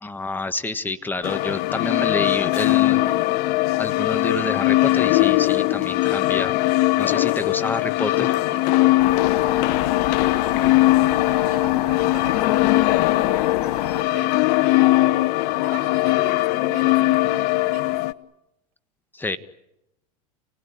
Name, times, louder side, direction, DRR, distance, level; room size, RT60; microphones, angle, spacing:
voice 1, 0.0-3.0 3.8-6.5 7.0-8.3 19.1-19.4, left 2 dB, 10° left, 9 dB, 1.6 m, -28 dB
sound 1, 1.2-18.1, left 18 dB, 55° left, 0.9 m, -20 dB
voice 2, 8.5-18.0, right 10 dB, 45° right, 4 dB, 6.7 m, -44 dB
sound 2, 9.0-14.0, left 11 dB, 80° left, 2.7 m, -28 dB
29.0 x 18.5 x 9.9 m, 0.90 s
hypercardioid pair, 105°, 20 cm